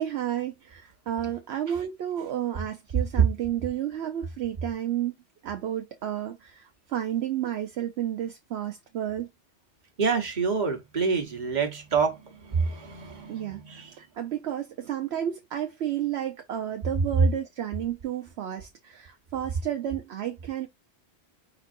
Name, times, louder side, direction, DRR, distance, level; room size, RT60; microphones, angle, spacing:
voice 1, 0.0-5.1 5.4-9.3 13.3-20.7, right 11 dB, 70° right, 0.9 m, -31 dB
voice 2, 2.9-3.3 10.0-14.1 17.2-17.3, right 5 dB, 40° right, 1.3 m, -26 dB
5.2 x 3.8 x 2.6 m
omnidirectional pair, 1.2 m